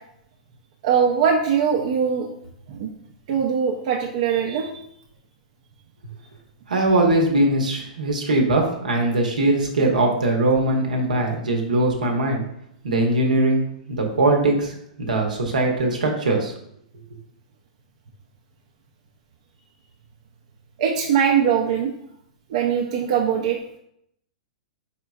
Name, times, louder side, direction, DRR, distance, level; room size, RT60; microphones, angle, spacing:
voice 1, 0.8-2.3 2.7-2.9 3.3-4.8 20.8-21.9 22.5-23.6, right 7 dB, 55° right, 0 dB, 0.5 m, -21 dB
voice 2, 6.7-12.4 12.8-16.5, right 2 dB, 85° right, 1 dB, 0.9 m, -21 dB
4.2 x 3.7 x 2.3 m, 0.73 s
hypercardioid pair, 115°, 4 cm